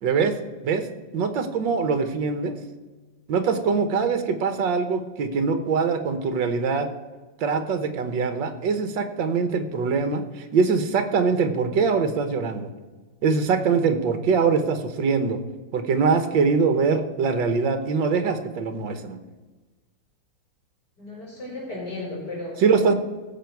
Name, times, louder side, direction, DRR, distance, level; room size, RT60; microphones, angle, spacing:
voice 1, 0.0-0.3 0.6-0.8 1.1-2.6 3.3-6.9 7.4-12.7 13.2-15.4 15.7-19.2 22.6-22.9, right 5 dB, 70° right, 8 dB, 1.7 m, -23 dB
voice 2, 21.0-22.6, left 2 dB, 55° left, -5 dB, 5.1 m, -34 dB
16.5 x 7.2 x 4.6 m, 1.3 s
omnidirectional pair, 2.1 m